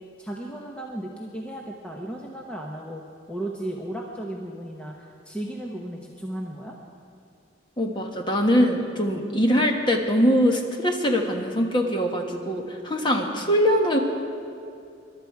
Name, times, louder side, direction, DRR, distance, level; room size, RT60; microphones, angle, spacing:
voice 1, 0.2-6.8, right 1 dB, 5° left, -1 dB, 0.9 m, -35 dB
voice 2, 7.8-14.0, equal, 25° left, 2 dB, 1.3 m, -22 dB
22.0 x 12.0 x 4.8 m, 2.6 s
head